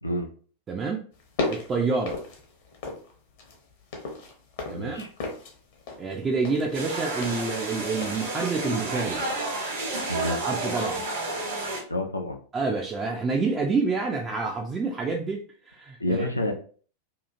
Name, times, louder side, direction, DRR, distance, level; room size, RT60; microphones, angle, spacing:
voice 1, 0.7-1.0 1.5-2.2 4.7-5.0 6.0-9.2 10.4-11.0 12.5-16.5, right 4 dB, 20° right, 0 dB, 0.3 m, -28 dB
sound 1, 1.1-3.1 3.4-8.9 9.2-9.4, left 3 dB, 50° left, 0.7 m, -35 dB
voice 2, 4.7-5.1 10.1-10.4 11.9-12.4 16.0-16.5, left 1 dB, 85° left, 4 dB, 0.5 m, -28 dB
sound 2, 6.7-11.8, right 2 dB, 60° right, 1.1 m, -31 dB
2.8 x 2.4 x 2.4 m, 0.43 s
figure-of-eight pair, 90°, 0 cm